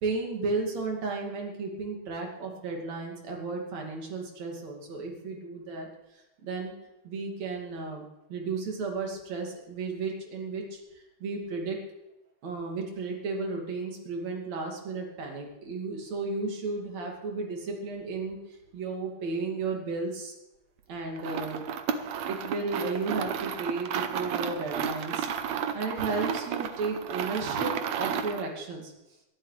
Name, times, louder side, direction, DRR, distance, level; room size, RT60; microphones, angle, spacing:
voice 1, 0.0-5.9 6.4-6.7 7.0-11.8 12.4-18.4 18.7-20.3 20.9-21.6 22.3-25.3 25.7-27.7 28.0-28.9, right 3 dB, 50° right, 1 dB, 3.4 m, -33 dB
sound 1, 21.2-28.5, right 7 dB, 90° right, 1.5 m, -32 dB
22.5 x 12.0 x 3.4 m, 0.94 s
omnidirectional pair, 4.5 m